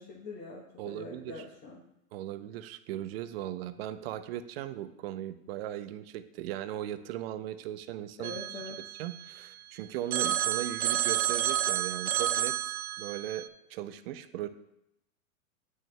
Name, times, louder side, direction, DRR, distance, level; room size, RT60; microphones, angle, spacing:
voice 1, 0.0-1.8 8.2-8.8, left 2 dB, 20° left, -2 dB, 1.0 m, -43 dB
voice 2, 0.8-1.4 2.1-8.3 9.0-14.5, right 12 dB, 45° right, 12 dB, 0.5 m, -38 dB
Telephone, 8.2-9.6 10.1-13.5, right 11 dB, 85° right, 0.6 m, -31 dB
8.8 x 6.4 x 2.2 m, 0.82 s
hypercardioid pair, 130°, 42 cm